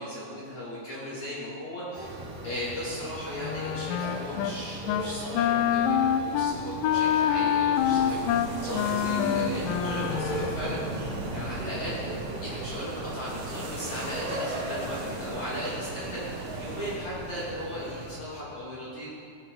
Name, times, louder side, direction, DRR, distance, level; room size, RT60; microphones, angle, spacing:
voice 1, 0.0-2.0 2.4-10.8 11.3-12.0 12.4-19.2, equal, 40° left, -9 dB, 3.3 m, -37 dB
sound 1, 1.9-18.1, right 2 dB, 50° right, 3.6 m, -38 dB
Wind instrument woodwind instrument, 3.4-4.6 4.9-5.1 5.3-10.6, left 9 dB, 85° left, 3.2 m, -26 dB
sound 2, 7.7-17.0, right 2 dB, 85° right, 4.7 m, -37 dB
16.5 x 15.5 x 4.0 m, 2.3 s
omnidirectional pair, 5.8 m